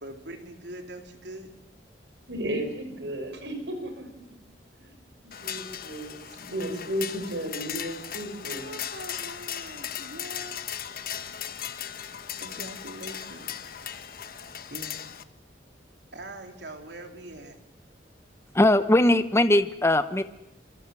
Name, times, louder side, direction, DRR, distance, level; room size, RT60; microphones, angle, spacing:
voice 1, 0.0-1.5 8.6-10.8 12.4-13.7 14.7-15.2 16.1-17.6, right 1 dB, 75° right, 4 dB, 3.6 m, -43 dB
voice 2, 2.3-4.1 4.8-8.7, right 1 dB, 90° right, 7 dB, 6.2 m, -34 dB
sound 1, 5.3-15.2, left 9 dB, 55° left, 1.2 m, -37 dB
voice 3, 18.5-20.2, left 1 dB, 15° left, 11 dB, 0.9 m, -20 dB
25.5 x 25.0 x 7.7 m, 0.83 s
head